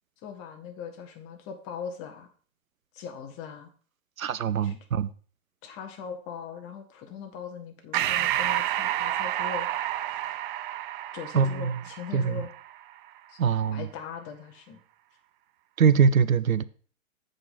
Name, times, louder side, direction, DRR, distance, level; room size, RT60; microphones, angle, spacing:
voice 1, 0.2-2.3 2.9-3.7 4.6-4.8 5.6-9.7 11.1-12.5 13.3-13.4 13.7-14.8, left 7 dB, 35° left, 1.7 m, -40 dB
voice 2, 4.2-5.1 11.3-11.8 12.1-12.4 13.4-13.9 15.8-16.6, right 6 dB, 90° right, 0.6 m, -23 dB
Breathing, 7.9-12.8, right 13 dB, 40° right, 0.5 m, -29 dB
7.7 x 5.2 x 5.7 m
hypercardioid pair, 110°, 40 cm